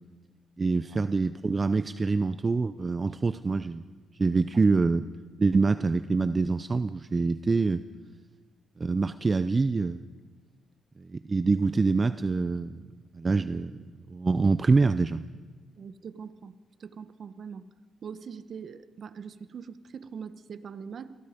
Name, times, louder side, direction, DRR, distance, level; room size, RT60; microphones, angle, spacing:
voice 1, 0.6-3.8 4.2-5.1 5.4-7.8 8.8-10.1 11.0-12.8 13.1-13.7 14.1-15.3, right 4 dB, 30° right, 13 dB, 0.6 m, -25 dB
voice 2, 15.8-16.5 16.8-17.6 18.0-21.2, right 6 dB, 55° right, 12 dB, 1.1 m, -42 dB
28.5 x 23.0 x 5.2 m, 1.4 s
cardioid pair, 90°, 0 cm